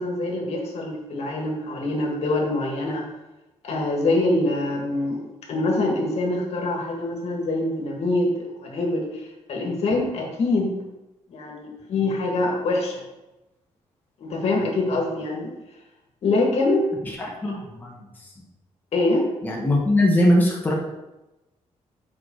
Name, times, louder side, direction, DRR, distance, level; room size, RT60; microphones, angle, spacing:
voice 1, 0.0-3.1 3.6-5.2 5.5-9.2 9.5-10.7 11.3-13.0 14.2-15.5 16.2-16.8 17.5-17.6 18.9-19.3, left 2 dB, 60° left, 0 dB, 1.8 m, -24 dB
voice 2, 17.0-18.3 19.4-20.7, left 1 dB, 15° left, -3 dB, 1.2 m, -21 dB
7.1 x 4.9 x 4.6 m, 1.0 s
cardioid pair, 130°, 12 cm